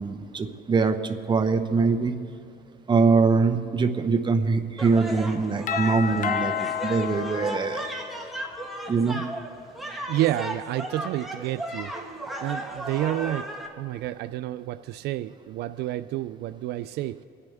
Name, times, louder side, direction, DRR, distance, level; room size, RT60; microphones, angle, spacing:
voice 1, 0.0-2.1 2.9-6.5 6.8-7.8 8.9-9.2, right 4 dB, 25° right, 7 dB, 0.9 m, -23 dB
sound 1, 4.8-13.7, right 1 dB, ahead, 1.5 m, -35 dB
Doorbell, 5.7-8.5, left 9 dB, 50° left, 0.5 m, -31 dB
voice 2, 10.1-11.9 12.4-17.2, right 14 dB, 75° right, 12 dB, 0.4 m, -29 dB
27.0 x 9.8 x 3.5 m, 2.6 s
cardioid pair, 110°, 17 cm